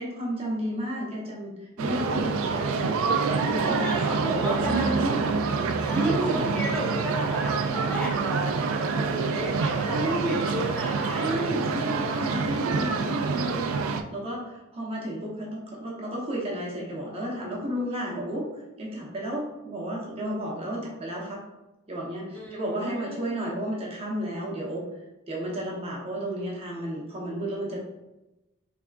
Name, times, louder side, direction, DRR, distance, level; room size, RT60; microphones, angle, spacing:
voice 1, 0.0-3.0 3.2-5.3 5.9-6.5 9.8-10.5 11.1-21.4 21.9-24.9 25.3-27.8, equal, 30° right, -3 dB, 0.8 m, -32 dB
sound 1, 1.8-14.0, right 4 dB, 70° right, 0.3 m, -27 dB
voice 2, 3.6-5.2 5.8-11.5 11.9-12.4 22.3-23.3, right 1 dB, 5° left, -5 dB, 0.8 m, -34 dB
3.5 x 3.5 x 2.4 m, 0.99 s
head